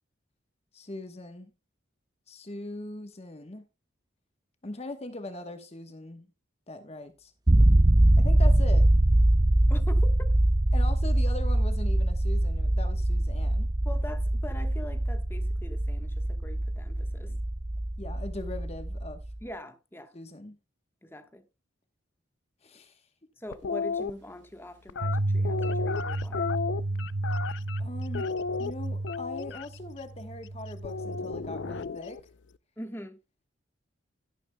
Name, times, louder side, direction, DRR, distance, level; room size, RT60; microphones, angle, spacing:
voice 1, 0.7-1.5 2.3-3.6 4.6-6.3 6.7-7.3 8.2-8.9 10.7-13.7 17.3-17.4 18.0-19.2 20.1-20.6 22.6-23.1 27.8-28.3 28.6-32.2, left 2 dB, 30° left, 1.0 m, -40 dB
sound 1, 7.5-19.4, right 1 dB, 20° right, 0.5 m, -23 dB
voice 2, 9.7-10.3 13.8-17.3 19.4-20.1 21.0-21.5 23.4-26.5 32.8-33.2, left 1 dB, 10° left, 1.2 m, -43 dB
sound 2, 23.5-24.1 24.9-27.8 28.1-29.6 30.8-32.2, left 5 dB, 65° left, 0.5 m, -33 dB
sound 3, 25.0-31.8, right 2 dB, 60° right, 0.7 m, -33 dB
12.5 x 11.5 x 2.2 m
head